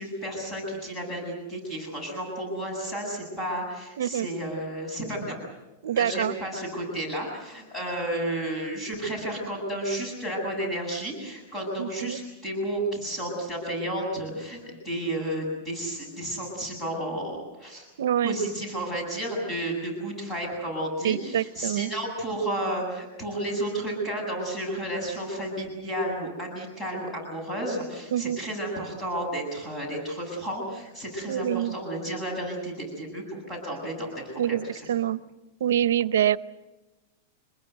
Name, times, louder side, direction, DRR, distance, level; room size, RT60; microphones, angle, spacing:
voice 1, 0.0-5.4 5.9-17.9 18.2-34.9, right 1 dB, 15° left, 0 dB, 8.0 m, -32 dB
voice 2, 4.0-4.3 5.8-6.3 11.8-12.2 18.0-18.4 21.0-21.9 28.1-28.4 31.3-31.8 34.4-35.2 35.6-36.4, right 11 dB, 85° right, 17 dB, 0.8 m, -25 dB
26.5 x 22.0 x 8.0 m, 1.1 s
supercardioid pair, 155°, 0 cm